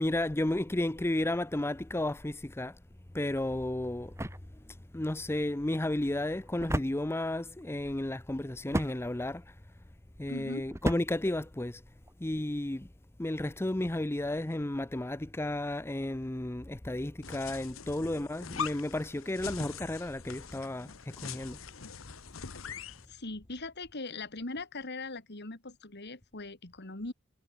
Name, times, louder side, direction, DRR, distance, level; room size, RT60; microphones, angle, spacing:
voice 1, 0.0-2.8 3.1-4.2 4.7-9.6 10.2-11.8 12.2-12.9 13.2-21.6, left 1 dB, 10° left, 0.6 m, -33 dB
sound 1, 3.3-12.2, right 1 dB, 15° right, 2.6 m, -39 dB
voice 2, 10.3-10.6 22.7-27.1, left 2 dB, 55° left, 2.6 m, -40 dB
sound 2, 17.2-23.1, left 6 dB, 75° left, 1.2 m, -42 dB
head